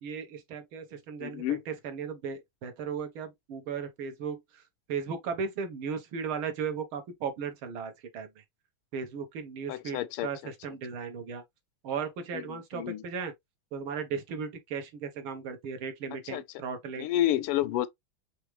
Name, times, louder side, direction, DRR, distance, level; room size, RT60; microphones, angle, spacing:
voice 1, 0.0-4.6 4.9-8.4 8.9-11.4 11.8-13.3 13.7-17.1, right 6 dB, 70° right, 1.9 m, -36 dB
voice 2, 1.2-1.6 9.7-10.5 12.3-12.4 12.7-13.0 16.3-16.4 17.0-17.9, left 13 dB, 90° left, 1.5 m, -29 dB
4.9 x 3.3 x 3.1 m
omnidirectional pair, 2.4 m